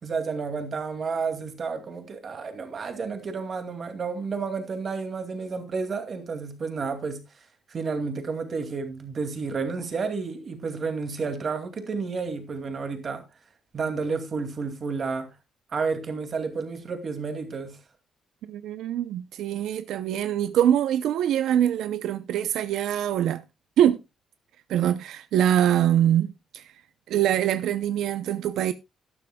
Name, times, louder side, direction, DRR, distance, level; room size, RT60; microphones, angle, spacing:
voice 1, 0.0-7.2 7.7-13.2 13.7-15.3 15.7-17.8, right 4 dB, 35° right, 2.4 m, -31 dB
voice 2, 18.5-23.4 23.8-24.0 24.7-26.7 27.1-28.7, right 10 dB, 85° right, 0.6 m, -24 dB
13.0 x 12.0 x 2.3 m
cardioid pair, 160°, 0 cm